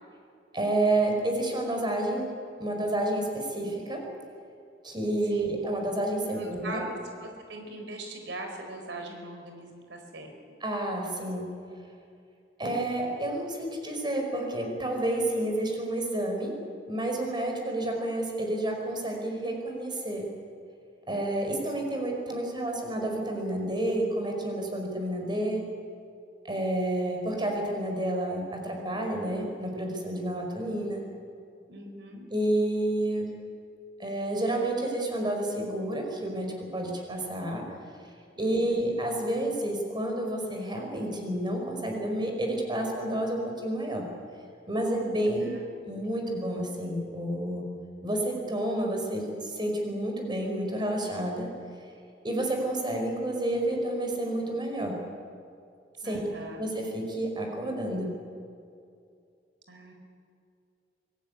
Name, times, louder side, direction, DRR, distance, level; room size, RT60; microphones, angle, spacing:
voice 1, 0.5-2.3 2.6-4.0 4.8-6.9 10.6-11.5 12.6-16.5 16.9-20.3 21.1-25.6 26.4-31.0 32.3-33.3 34.0-37.6 38.4-44.1 44.7-45.5 45.9-47.7 48.0-51.5 52.2-55.0 56.0-56.2 56.6-58.1, right 1 dB, 25° right, 2 dB, 5.2 m, -30 dB
voice 2, 6.3-10.3 31.7-32.3 38.3-38.9 45.5-45.7 46.1-46.2 56.0-56.7 59.7-59.9, right 2 dB, 75° right, 4 dB, 4.5 m, -41 dB
24.5 x 18.0 x 9.6 m, 2.4 s
head